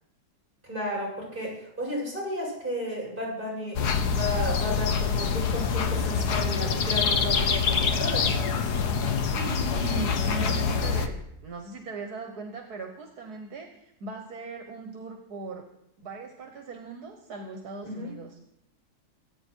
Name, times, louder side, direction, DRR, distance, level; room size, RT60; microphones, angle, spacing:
voice 1, 0.6-8.3 17.8-18.1, equal, 30° right, -4 dB, 7.7 m, -33 dB
sound 1, 3.7-11.1, left 5 dB, 90° left, 1.7 m, -25 dB
voice 2, 9.4-15.6 16.0-18.4, right 3 dB, 75° right, 4 dB, 1.8 m, -39 dB
24.5 x 9.0 x 4.6 m, 0.79 s
omnidirectional pair, 1.7 m